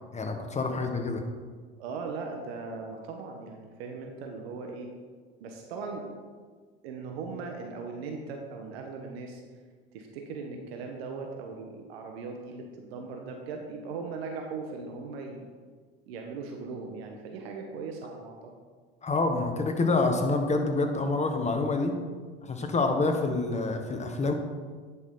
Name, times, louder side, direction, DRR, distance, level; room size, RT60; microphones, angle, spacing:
voice 1, 0.1-1.2 19.0-21.9 22.4-24.3, left 3 dB, 20° left, 4 dB, 1.4 m, -27 dB
voice 2, 1.8-4.9 5.4-6.1 6.8-9.4 9.9-15.5 16.1-18.5 22.7-22.9, right 4 dB, 75° right, 2 dB, 1.1 m, -39 dB
10.5 x 6.2 x 3.8 m, 1.5 s
hypercardioid pair, 80°, 31 cm